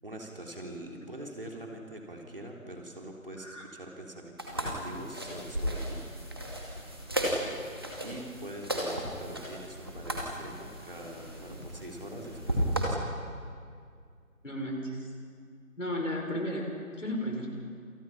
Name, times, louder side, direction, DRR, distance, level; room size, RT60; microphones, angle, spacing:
voice 1, 0.0-6.1 8.0-13.2, right 1 dB, 40° right, 1 dB, 3.8 m, -44 dB
sound 1, 4.4-12.8, equal, 15° right, 2.3 m, -35 dB
voice 2, 14.4-15.1 15.8-16.7 17.0-17.5, equal, 60° left, 1 dB, 6.7 m, -34 dB
29.5 x 28.5 x 5.8 m, 2.1 s
figure-of-eight pair, 170°, 42 cm